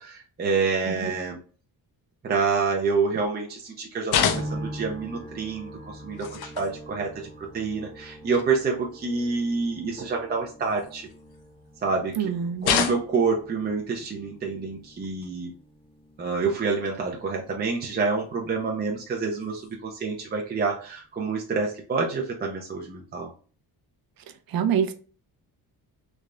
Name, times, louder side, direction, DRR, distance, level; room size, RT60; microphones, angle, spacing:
voice 1, 0.0-1.4 2.2-11.1 11.8-12.3 12.6-15.5 16.2-23.3, right 4 dB, 25° right, 0.5 m, -27 dB
sound 1, 4.1-4.8 6.1-6.7 7.7-7.8 8.3-8.4 10.6-11.4 12.6-13.3 15.0-15.3 16.8-17.0 18.1-18.2 19.4-19.7, left 7 dB, 90° left, 0.7 m, -28 dB
sound 2, 4.2-19.5 19.8-20.6, equal, 15° left, 0.6 m, -44 dB
voice 2, 12.2-12.9 24.5-24.9, right 8 dB, 65° right, 0.6 m, -26 dB
3.4 x 3.2 x 2.5 m
wide cardioid pair, 175°, 38 cm